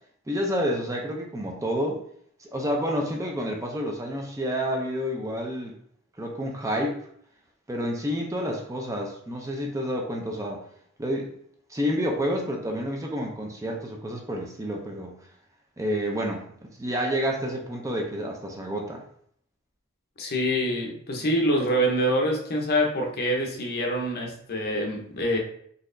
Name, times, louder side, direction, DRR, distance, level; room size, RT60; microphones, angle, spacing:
voice 1, 0.3-2.0 2.4-5.7 6.2-7.0 7.7-10.6 11.0-11.3 11.7-15.2 15.8-16.5 16.8-19.0, equal, 15° right, 1 dB, 0.5 m, -29 dB
voice 2, 20.2-25.4, equal, 50° left, 1 dB, 0.7 m, -25 dB
4.0 x 2.9 x 2.6 m, 0.64 s
head